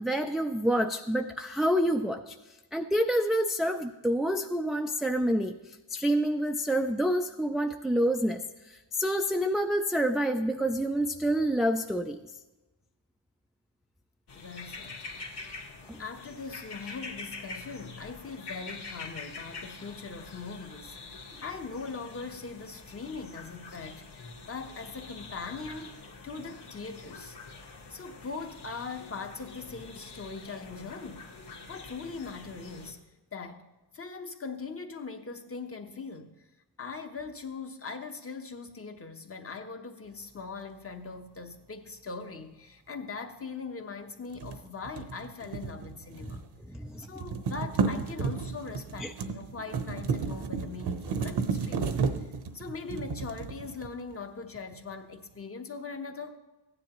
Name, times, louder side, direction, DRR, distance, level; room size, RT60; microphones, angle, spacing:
voice 1, 0.0-2.3 2.7-12.2 15.9-16.0 46.7-47.1 49.0-49.1, equal, ahead, 4 dB, 0.3 m, -28 dB
sound 1, 14.3-32.9, left 3 dB, 60° left, 1.7 m, -45 dB
voice 2, 14.3-15.1 16.0-27.4 27.9-31.3 31.7-33.0 33.3-33.7 33.9-36.5 36.8-46.4 47.0-56.4, left 4 dB, 30° left, 6 dB, 0.9 m, -41 dB
sound 2, 44.3-46.6 46.8-54.1, right 5 dB, 60° right, 0.9 m, -33 dB
15.0 x 9.9 x 3.0 m, 1.1 s
wide cardioid pair, 110°, 46 cm